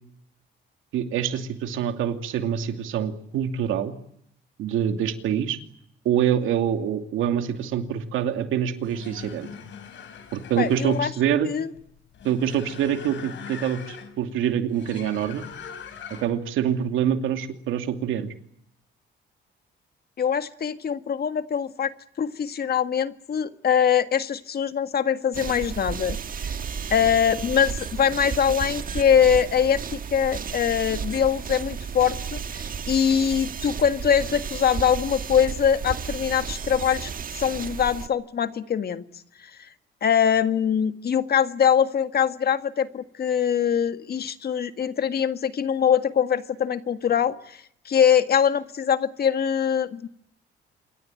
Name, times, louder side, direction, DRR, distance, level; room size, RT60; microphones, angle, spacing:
voice 1, 0.9-3.9 4.6-5.6 6.0-9.5 10.3-11.5 12.2-15.4 16.2-18.3, right 9 dB, 90° right, 7 dB, 2.7 m, -25 dB
sound 1, 8.7-16.5, left 7 dB, 70° left, 5.2 m, -42 dB
voice 2, 10.6-11.1 11.4-11.7 20.2-26.5 26.9-39.0 39.4-39.7 40.0-50.1, left 8 dB, 50° left, 10 dB, 1.8 m, -23 dB
sound 2, 25.3-38.1, right 6 dB, 45° right, 1.4 m, -33 dB
27.5 x 23.0 x 9.1 m, 0.72 s
cardioid pair, 90°, 20 cm